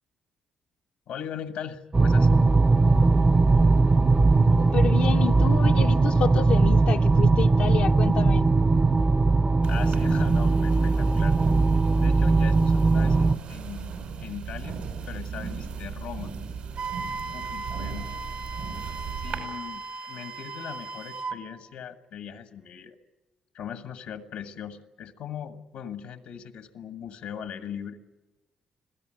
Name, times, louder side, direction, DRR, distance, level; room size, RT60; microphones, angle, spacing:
voice 1, 1.1-2.3 9.6-11.4 12.0-13.9 14.2-14.8 15.1-16.3 17.3-18.1 19.1-22.9 23.5-28.0, left 8 dB, 85° left, 1.6 m, -39 dB
sound 1, 1.9-13.4, right 3 dB, 30° right, 0.7 m, -20 dB
voice 2, 4.6-8.5, left 8 dB, 70° left, 0.7 m, -29 dB
sound 2, 9.6-19.4, right 6 dB, 80° right, 5.8 m, -36 dB
Wind instrument woodwind instrument, 16.7-21.4, right 4 dB, 65° right, 2.4 m, -37 dB
26.0 x 16.0 x 9.0 m
supercardioid pair, 65°, 2 cm